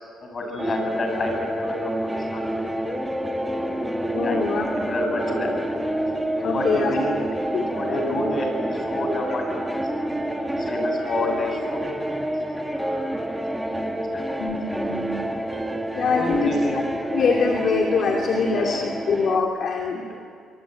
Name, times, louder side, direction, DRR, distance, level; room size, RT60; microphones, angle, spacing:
voice 1, 0.2-1.8 2.2-2.6 4.1-5.5 6.4-7.1 7.7-9.8 10.1-10.2 10.5-11.8 12.2-12.3 12.6-13.0 13.3-14.2 16.0-16.8 18.5-18.8, left 1 dB, 40° left, 4 dB, 7.7 m, -29 dB
sound 1, 0.6-19.4, right 1 dB, 5° right, 2.2 m, -28 dB
voice 2, 4.0-4.7 6.4-7.0 7.5-8.1 14.4-15.2 16.0-16.8 17.1-20.2, left 5 dB, 55° left, 2 dB, 2.8 m, -24 dB
27.5 x 23.0 x 9.3 m, 2.3 s
cardioid pair, 90°, 0 cm